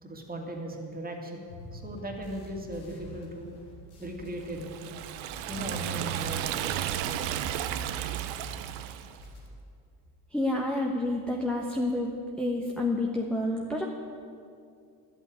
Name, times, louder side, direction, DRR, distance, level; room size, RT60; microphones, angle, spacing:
voice 1, 0.0-3.5 4.0-4.9 5.5-6.8, right 1 dB, 20° right, 1 dB, 2.4 m, -38 dB
sound 1, 1.5-8.8 9.0-9.5, left 1 dB, 90° left, 3.6 m, -47 dB
Liquid, 4.5-9.2, right 11 dB, 75° right, 0.9 m, -33 dB
voice 2, 10.3-12.1 12.4-13.8, left 1 dB, ahead, -1 dB, 1.2 m, -29 dB
11.5 x 8.2 x 9.4 m, 2.4 s
supercardioid pair, 95°, 48 cm